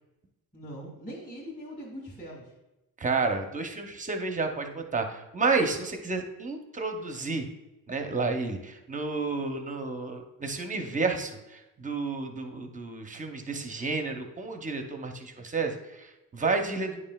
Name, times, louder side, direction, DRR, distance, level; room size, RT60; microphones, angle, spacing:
voice 1, 0.5-2.5, equal, 20° left, -4 dB, 1.6 m, -41 dB
voice 2, 3.0-7.5 7.9-17.0, right 3 dB, 20° right, 4 dB, 0.6 m, -31 dB
9.5 x 5.4 x 2.3 m, 0.98 s
cardioid pair, 165°, 37 cm